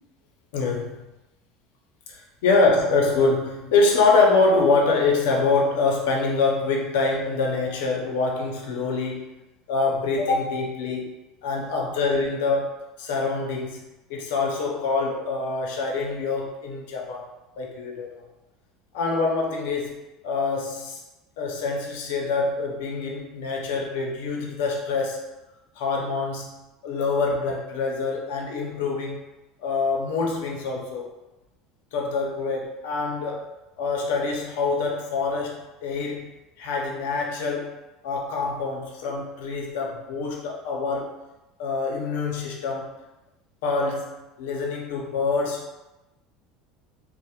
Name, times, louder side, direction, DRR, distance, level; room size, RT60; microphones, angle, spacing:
voice 1, 0.5-1.1 2.1-9.4 9.7-11.1 11.4-17.3 17.6-18.2 18.9-21.0 21.4-25.2 25.8-29.2 29.6-31.1 31.9-33.5 33.8-36.3 36.6-37.7 38.0-41.2 41.6-43.0 43.6-44.1 44.4-45.6, left 3 dB, 90° left, 0 dB, 0.5 m, -25 dB
2.9 x 2.1 x 2.3 m, 1.0 s
cardioid pair, 155°, 0 cm